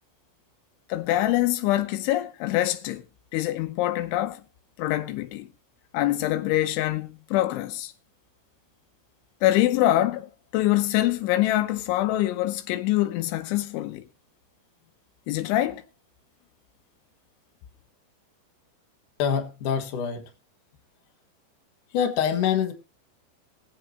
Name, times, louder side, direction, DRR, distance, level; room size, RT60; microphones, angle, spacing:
voice 1, 0.9-3.0 3.3-4.4 4.8-5.5 5.9-7.9 9.4-14.0 15.3-15.8, left 15 dB, 90° left, 3.3 m, -24 dB
voice 2, 19.2-20.3 21.9-22.7, left 8 dB, 60° left, 2.5 m, -25 dB
21.5 x 7.7 x 3.0 m
omnidirectional pair, 5.3 m